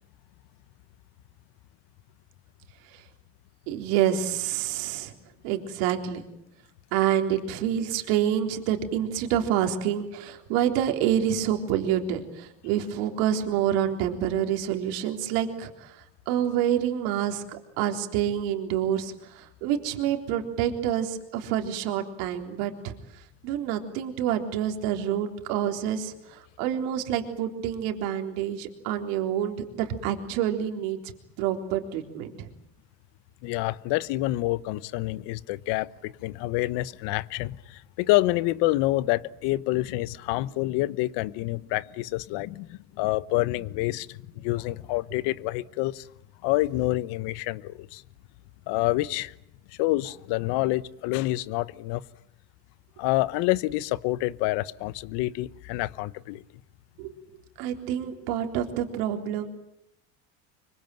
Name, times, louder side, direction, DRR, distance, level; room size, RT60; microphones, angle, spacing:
voice 1, 3.7-5.1 5.4-6.2 6.9-22.9 23.4-31.0 31.4-32.5 57.0-57.1 57.6-59.5, right 10 dB, 75° right, 3.8 m, -27 dB
voice 2, 33.4-46.1 46.4-48.0 48.7-49.3 49.8-52.0 53.0-56.4, left 18 dB, 65° left, 1.1 m, -27 dB
25.0 x 24.0 x 9.2 m
supercardioid pair, 120°, 45 cm